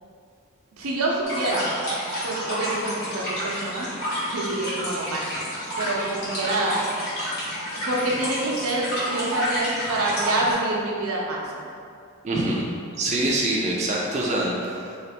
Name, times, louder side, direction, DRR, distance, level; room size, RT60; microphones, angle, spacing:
voice 1, 0.8-1.7 2.2-3.9 4.2-5.5 5.8-6.8 7.8-11.4, right 2 dB, 90° right, -3 dB, 0.7 m, -27 dB
sound 1, 1.2-10.5, equal, 50° left, 1.5 m, -30 dB
voice 2, 12.2-12.6 13.0-15.0, right 1 dB, 35° right, -4 dB, 0.4 m, -25 dB
3.2 x 2.5 x 4.2 m, 2.4 s
head